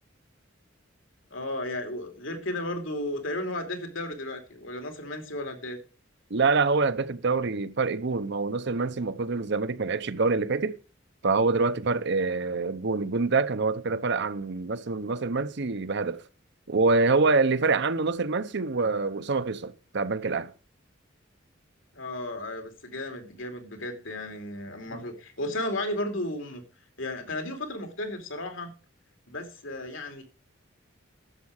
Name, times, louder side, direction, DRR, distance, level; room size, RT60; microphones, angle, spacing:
voice 1, 1.3-5.8 21.9-26.6 27.0-28.7 29.3-30.2, left 1 dB, 75° left, 2.9 m, -34 dB
voice 2, 6.3-10.8 11.2-16.2 16.7-20.5 24.9-25.0, right 4 dB, 60° right, 0.8 m, -26 dB
11.0 x 7.6 x 6.5 m
head